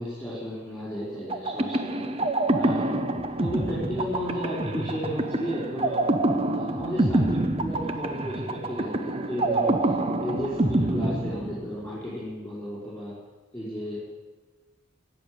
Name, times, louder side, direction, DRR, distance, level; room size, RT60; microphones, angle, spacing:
voice 1, 0.0-2.0 2.6-3.0 3.3-6.0 6.5-13.1 13.5-14.0, equal, 10° left, -9 dB, 4.4 m, -34 dB
sound 1, 1.3-12.0, right 2 dB, 25° right, 0.7 m, -26 dB
17.0 x 7.1 x 9.5 m, 1.3 s
head